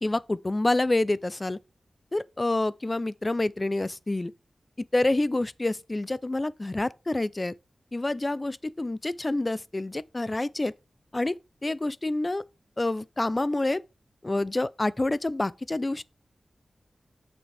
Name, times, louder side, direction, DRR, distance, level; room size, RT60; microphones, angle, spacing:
voice 1, 0.0-1.6 2.1-4.3 4.8-7.5 7.9-10.7 11.1-12.4 12.8-13.8 14.2-16.0, left 2 dB, 30° left, 0.4 m, -27 dB
8.1 x 7.0 x 3.3 m
wide cardioid pair, 85°, 0 cm